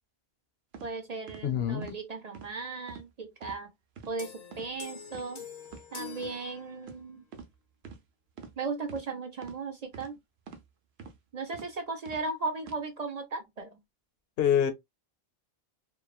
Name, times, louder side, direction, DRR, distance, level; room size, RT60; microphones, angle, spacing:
sound 1, 0.7-0.9 1.3-1.4 1.8-2.0 2.3-2.5 2.9-3.1 3.4-3.6 4.0-4.1 4.5-4.7 5.1-5.3 5.7-5.8 6.2-6.4 6.8-7.0 7.3-7.5 7.8-8.0 8.4-8.5 8.9-9.1 9.4-9.6 9.9-10.1 10.5-10.7 11.0-11.2 11.5-11.7 12.1-12.2 12.6-12.8, right 6 dB, 90° right, 0.9 m, -46 dB
voice 1, 0.8-3.7 4.1-5.4 5.9-7.2 8.6-10.2 11.3-13.8, right 3 dB, 50° right, 0.6 m, -36 dB
voice 2, 1.4-1.9 14.4-14.7, left 9 dB, 75° left, 0.8 m, -26 dB
sound 2, 4.2-7.2, left 8 dB, 50° left, 0.6 m, -46 dB
3.0 x 2.2 x 2.3 m
omnidirectional pair, 1.0 m